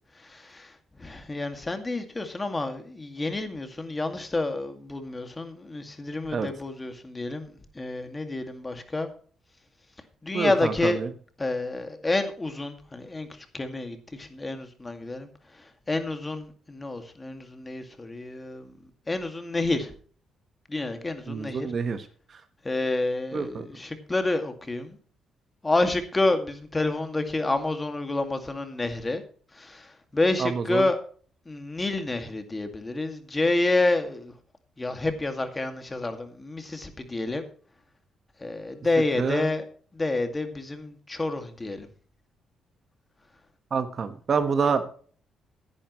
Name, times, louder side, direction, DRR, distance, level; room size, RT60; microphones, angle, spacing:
voice 1, 0.2-0.7 1.0-9.1 10.2-11.0 11.4-13.3 13.5-15.3 15.9-18.7 19.1-19.9 20.7-21.7 22.6-25.0 25.6-29.2 29.5-31.0 31.5-34.3 34.8-37.5 38.4-39.7 39.9-41.9, left 2 dB, 20° left, 7 dB, 2.2 m, -29 dB
voice 2, 10.3-11.1 21.3-22.0 23.3-23.6 30.4-30.9 39.2-39.5 43.7-44.9, right 5 dB, 45° right, 10 dB, 1.4 m, -27 dB
13.5 x 11.0 x 3.1 m, 0.44 s
cardioid pair, 90°, 0 cm